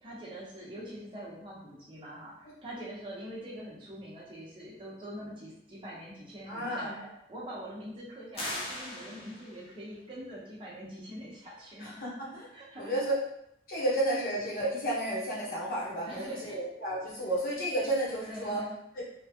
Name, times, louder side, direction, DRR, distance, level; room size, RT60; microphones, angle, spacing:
voice 1, 0.0-11.9 12.5-13.1 16.0-16.6 18.3-18.8, equal, 30° right, -6 dB, 0.9 m, -44 dB
voice 2, 6.5-7.0 11.8-12.5 12.8-13.2 13.7-18.6 18.9-19.0, right 1 dB, 55° left, -6 dB, 1.0 m, -32 dB
sound 1, 8.3-9.7, left 1 dB, 30° left, 0.7 m, -39 dB
3.1 x 2.3 x 2.8 m, 0.77 s
head